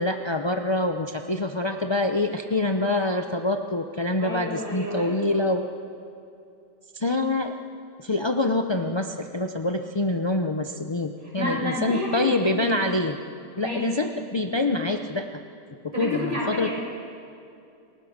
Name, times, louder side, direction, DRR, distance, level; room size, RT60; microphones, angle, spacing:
voice 1, 0.0-5.7 6.9-7.5 8.0-13.2 13.6-15.4 15.8-16.8, left 2 dB, 40° left, 5 dB, 0.4 m, -26 dB
voice 2, 4.2-5.2 11.2-12.7 13.5-13.9 15.9-16.8, left 1 dB, 30° right, -4 dB, 6.7 m, -30 dB
28.5 x 18.0 x 6.6 m, 2.6 s
omnidirectional pair, 1.8 m